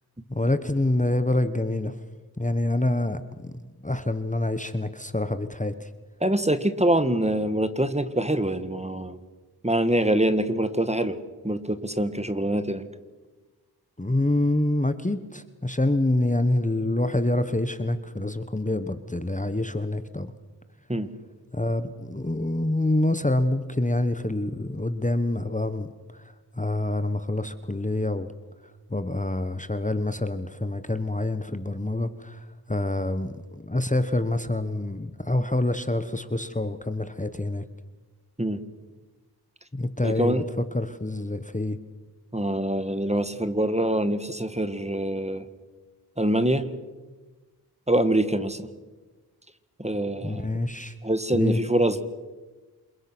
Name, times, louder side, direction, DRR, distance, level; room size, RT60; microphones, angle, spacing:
voice 1, 0.3-2.0 2.4-5.9 14.0-20.3 21.5-28.3 28.9-37.6 39.7-40.4 40.7-41.8 50.2-50.9 51.3-51.6, left 2 dB, 20° left, 11 dB, 1.2 m, -26 dB
voice 2, 6.2-9.2 9.6-11.2 11.4-12.8 20.9-21.1 38.4-38.6 40.0-40.4 42.3-45.4 46.2-46.7 47.9-48.7 49.8-50.4 51.0-52.0, right 1 dB, 15° right, 11 dB, 1.6 m, -24 dB
28.0 x 22.5 x 6.2 m, 1.2 s
wide cardioid pair, 45°, 40 cm